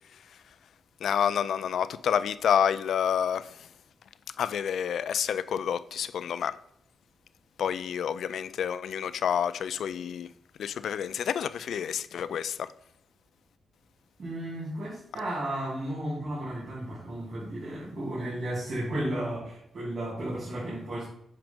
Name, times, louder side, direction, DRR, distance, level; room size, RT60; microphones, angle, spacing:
voice 1, 1.0-3.7 4.4-6.6 7.6-10.3 10.6-12.7, left 8 dB, 75° left, 0.3 m, -29 dB
voice 2, 14.2-21.1, right 1 dB, 45° right, 2.5 m, -34 dB
7.6 x 5.1 x 3.6 m
wide cardioid pair, 155°, 0 cm